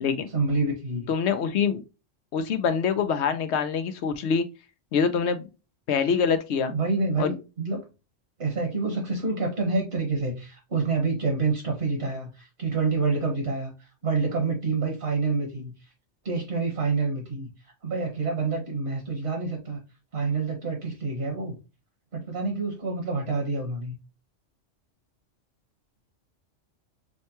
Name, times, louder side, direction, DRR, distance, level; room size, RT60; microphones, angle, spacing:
voice 1, 0.3-1.1 6.7-7.8 8.4-15.7 16.2-17.5 17.8-19.8 20.1-21.6 22.1-24.0, right 3 dB, 60° right, 1 dB, 1.5 m, -27 dB
voice 2, 1.1-1.8 2.3-4.5 4.9-5.5 5.9-6.7 7.2-7.3, left 6 dB, 70° left, 9 dB, 0.8 m, -25 dB
6.2 x 2.2 x 2.8 m, 0.29 s
omnidirectional pair, 1.3 m